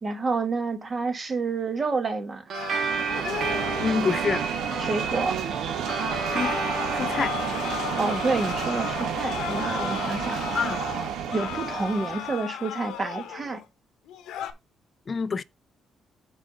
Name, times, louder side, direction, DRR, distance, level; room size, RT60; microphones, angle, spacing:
voice 1, 0.0-2.5 4.8-5.4 8.0-10.4 11.3-13.6, right 4 dB, 35° right, 1.5 m, -28 dB
sound 1, 2.5-5.3 5.8-13.6 14.1-14.5, left 10 dB, 85° left, 0.9 m, -35 dB
sound 2, 2.5-11.3, right 6 dB, 60° right, 1.2 m, -34 dB
sound 3, 2.6-12.4, right 8 dB, 80° right, 0.8 m, -31 dB
voice 2, 3.8-4.4 6.3-6.6 6.9-7.3 10.5-10.8 15.1-15.4, left 5 dB, 40° left, 0.5 m, -26 dB
6.2 x 4.2 x 5.1 m
cardioid pair, 90°, 0 cm